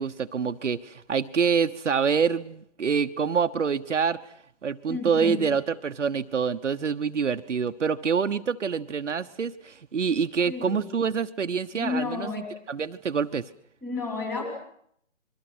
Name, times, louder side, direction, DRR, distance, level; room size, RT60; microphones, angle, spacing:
voice 1, 0.0-4.2 4.6-12.3 12.7-13.4, right 6 dB, 70° right, 8 dB, 1.1 m, -26 dB
voice 2, 4.8-5.4 10.4-10.9 11.7-12.5 13.8-14.4, left 4 dB, 5° left, 2 dB, 3.3 m, -31 dB
27.0 x 23.0 x 6.1 m, 0.68 s
hypercardioid pair, 165°, 38 cm